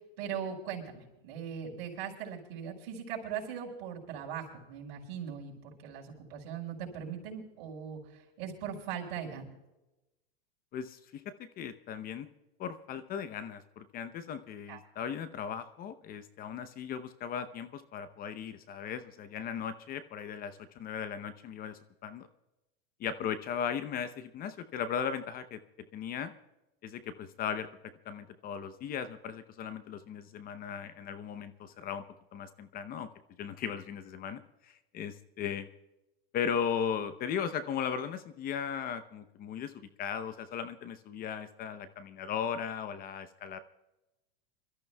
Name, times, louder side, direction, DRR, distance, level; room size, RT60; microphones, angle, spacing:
voice 1, 0.0-9.5 14.7-14.8, right 8 dB, 60° right, 0 dB, 5.5 m, -40 dB
voice 2, 10.7-11.2 11.6-12.3 12.6-22.3 23.0-25.6 25.9-26.3 26.8-27.7 28.0-32.0 32.3-33.1 33.4-35.7 36.3-43.6, left 7 dB, 30° left, 12 dB, 0.8 m, -37 dB
28.0 x 14.0 x 2.3 m, 1.0 s
supercardioid pair, 130°, 30 cm